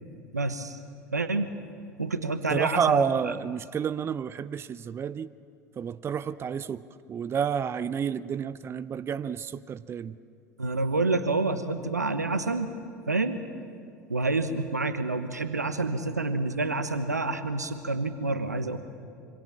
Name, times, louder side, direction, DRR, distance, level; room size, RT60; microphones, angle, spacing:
voice 1, 0.3-0.8 1.1-1.5 2.0-3.0 10.6-12.7 13.1-13.4 14.1-18.8, right 3 dB, 90° right, 11 dB, 1.2 m, -28 dB
voice 2, 2.5-5.3 5.8-6.8 7.1-10.2, right 7 dB, 30° right, 17 dB, 0.6 m, -29 dB
26.5 x 25.5 x 7.4 m, 2.4 s
figure-of-eight pair, 75°, 9 cm